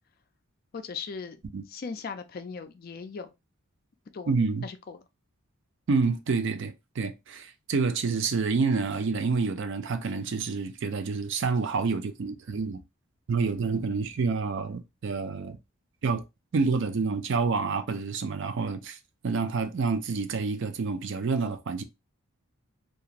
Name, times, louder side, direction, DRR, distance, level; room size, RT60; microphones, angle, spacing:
voice 1, 0.7-1.4 1.7-3.3 4.1-4.3 4.6-5.0 13.7-14.0, left 5 dB, 45° left, 0.3 m, -38 dB
voice 2, 4.3-4.7 5.9-12.8 13.3-15.6 16.0-16.2 16.5-19.0 19.2-21.8, right 4 dB, 55° right, 0.4 m, -28 dB
2.9 x 2.3 x 2.4 m
head